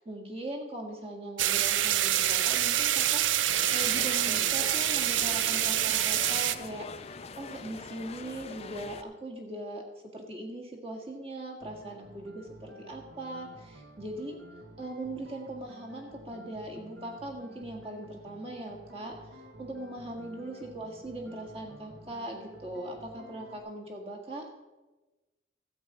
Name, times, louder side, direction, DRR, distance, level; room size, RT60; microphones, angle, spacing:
voice 1, 0.1-3.2 3.7-6.9 7.4-9.8 10.1-14.4 14.8-19.1 19.6-24.5, right 1 dB, 35° right, -1 dB, 1.8 m, -40 dB
sound 1, 1.4-6.6, right 12 dB, 90° right, 0.5 m, -26 dB
sound 2, 3.5-9.0, left 4 dB, 35° left, 0.5 m, -43 dB
sound 3, 11.6-23.6, right 1 dB, 60° right, 1.4 m, -51 dB
13.5 x 5.0 x 7.9 m, 1.2 s
head